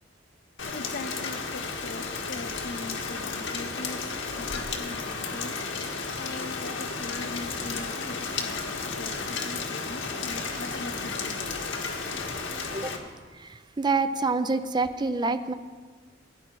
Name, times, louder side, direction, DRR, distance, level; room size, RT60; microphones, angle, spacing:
Rain, 0.6-13.0, left 4 dB, 90° left, 1.6 m, -33 dB
voice 1, 0.7-5.6 6.2-11.5, left 2 dB, 60° left, 8 dB, 0.9 m, -41 dB
voice 2, 13.8-15.5, right 3 dB, 25° right, 11 dB, 0.5 m, -26 dB
17.0 x 9.6 x 4.6 m, 1.5 s
head